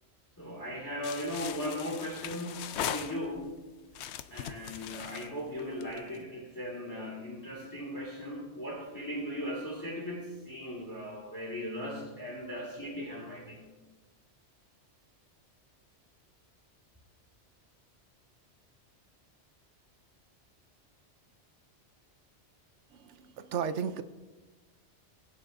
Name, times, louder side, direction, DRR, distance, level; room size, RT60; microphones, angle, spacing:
voice 1, 0.4-3.5 4.3-13.7, left 1 dB, 15° left, -4 dB, 1.9 m, -38 dB
sound 1, 1.0-3.5 3.9-6.2, left 10 dB, 75° left, 0.9 m, -39 dB
voice 2, 23.4-24.0, right 7 dB, 85° right, 11 dB, 1.0 m, -32 dB
21.0 x 9.4 x 2.6 m, 1.2 s
omnidirectional pair, 1.2 m